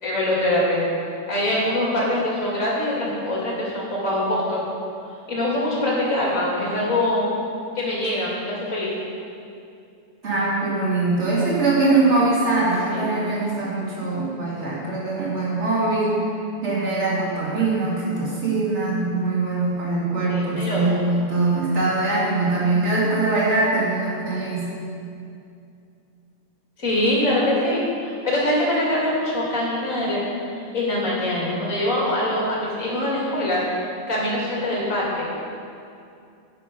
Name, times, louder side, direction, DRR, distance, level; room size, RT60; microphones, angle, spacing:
voice 1, 0.0-0.8 1.3-4.6 5.3-7.3 7.7-8.9 12.9-13.0 20.3-21.0 26.8-30.2 30.7-33.6 34.1-35.2, left 1 dB, 30° left, -5 dB, 2.9 m, -23 dB
voice 2, 10.2-16.2 16.6-24.7, right 3 dB, 25° right, -6 dB, 2.6 m, -22 dB
11.0 x 9.2 x 5.4 m, 2.5 s
omnidirectional pair, 3.3 m